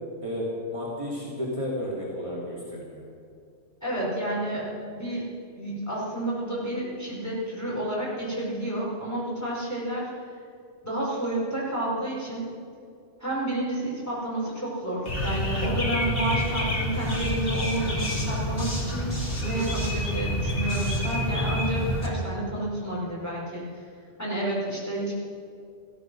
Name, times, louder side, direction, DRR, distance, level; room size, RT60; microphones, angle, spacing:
voice 1, 0.7-3.0 3.9-4.0, equal, 30° right, -6 dB, 3.3 m, -32 dB
voice 2, 3.8-5.3 5.5-10.1 10.8-12.4 13.2-19.1 19.4-23.6 24.2-25.1, right 1 dB, 15° left, -6 dB, 5.0 m, -30 dB
sound 1, 15.1-22.1, left 1 dB, 55° left, 2.6 m, -28 dB
15.5 x 14.5 x 6.4 m, 2.4 s
omnidirectional pair, 1.1 m